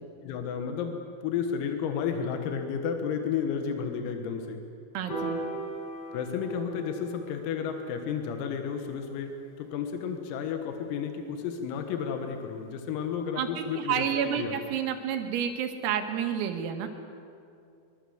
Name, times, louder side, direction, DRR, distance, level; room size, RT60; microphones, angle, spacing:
voice 1, 0.2-4.6 6.1-9.3 9.6-14.1 14.4-14.6, left 7 dB, 85° left, 5 dB, 4.2 m, -32 dB
voice 2, 4.9-5.4 13.4-16.9, right 8 dB, 85° right, 5 dB, 4.5 m, -30 dB
Piano, 5.1-11.4, right 2 dB, 30° left, 6.4 m, -40 dB
24.5 x 23.5 x 8.0 m, 2.5 s
omnidirectional pair, 5.9 m